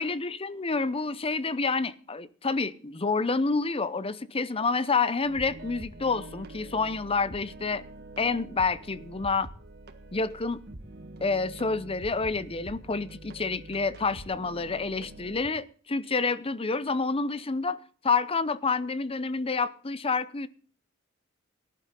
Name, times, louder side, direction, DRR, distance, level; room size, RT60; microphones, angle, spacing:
voice 1, 0.0-7.8 8.2-9.5 10.1-10.6 11.2-17.8 18.0-20.5, left 4 dB, 30° left, 0.7 m, -28 dB
sound 1, 5.2-15.5, right 1 dB, 55° right, 1.5 m, -45 dB
18.5 x 11.5 x 3.8 m
head